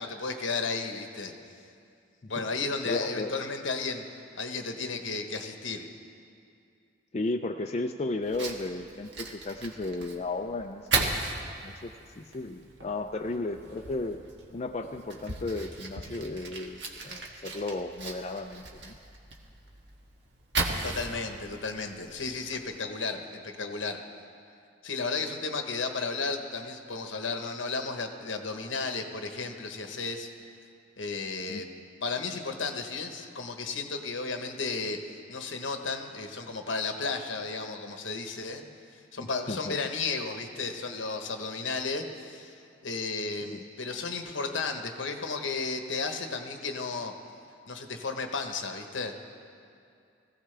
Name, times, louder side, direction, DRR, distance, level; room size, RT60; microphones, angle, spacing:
voice 1, 0.0-1.3 2.3-4.0 4.4-5.9 20.8-24.0 24.8-30.3 31.0-31.7 32.0-38.6 39.1-42.5 42.8-47.1 47.7-49.2, left 4 dB, 75° left, 5 dB, 1.1 m, -33 dB
voice 2, 2.8-3.3 7.1-11.2 11.6-14.2 14.5-19.0 31.5-31.6 39.2-39.7 43.5-43.6, left 2 dB, 35° left, 4 dB, 0.4 m, -34 dB
Fire, 8.2-22.8, right 3 dB, 60° right, 1.4 m, -37 dB
21.0 x 15.5 x 3.4 m, 2.4 s
head